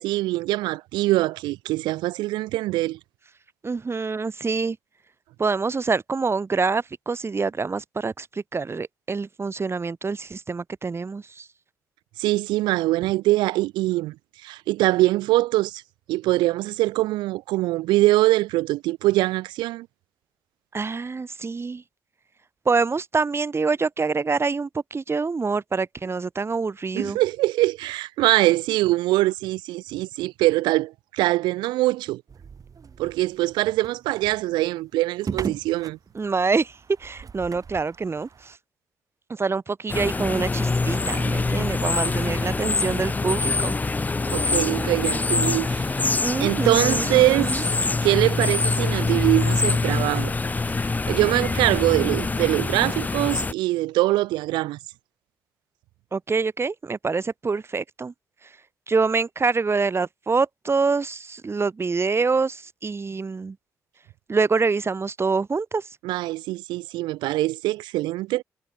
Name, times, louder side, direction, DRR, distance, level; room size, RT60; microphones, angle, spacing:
voice 1, 0.0-3.0 12.2-14.1 14.4-15.8 16.1-19.9 26.9-32.2 33.0-36.0 44.3-46.1 46.4-47.7 48.0-50.3 50.7-54.8 66.0-68.4, right 18 dB, 80° right, 1.0 m, -23 dB
voice 2, 3.6-4.8 5.4-11.5 20.7-21.8 22.7-27.2 36.1-38.6 39.3-43.8 46.2-47.7 56.1-58.1 58.9-63.6 64.3-65.9, right 4 dB, 35° right, 0.8 m, -26 dB
sound 1, 32.3-38.6, right 6 dB, 50° right, 1.9 m, -38 dB
sound 2, 39.9-53.5, left 3 dB, 20° left, 0.4 m, -24 dB
hypercardioid pair, 45°, 8 cm